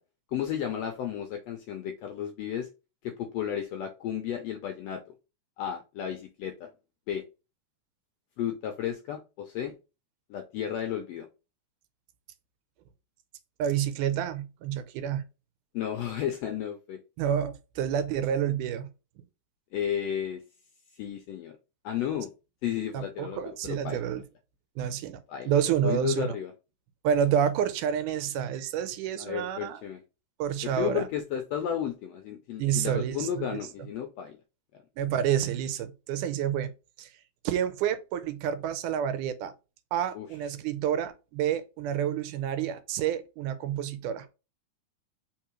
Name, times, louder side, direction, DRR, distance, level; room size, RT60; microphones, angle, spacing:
voice 1, 0.3-2.7 3.0-5.0 5.6-6.7 7.1-7.2 8.4-9.7 10.3-11.3 15.7-17.0 19.7-20.4 20.9-21.6 21.8-22.3 22.6-24.0 25.3-25.5 25.8-26.5 29.2-30.0 30.6-34.4 40.1-40.3, left 9 dB, 80° left, 1.5 m, -33 dB
voice 2, 13.6-15.2 17.2-18.9 22.9-24.2 24.8-26.4 27.0-29.8 30.4-31.1 32.6-33.6 35.0-36.7 37.0-37.1 37.5-39.5 39.9-44.3, right 9 dB, 85° right, 2.2 m, -29 dB
4.6 x 3.6 x 3.0 m
omnidirectional pair, 3.6 m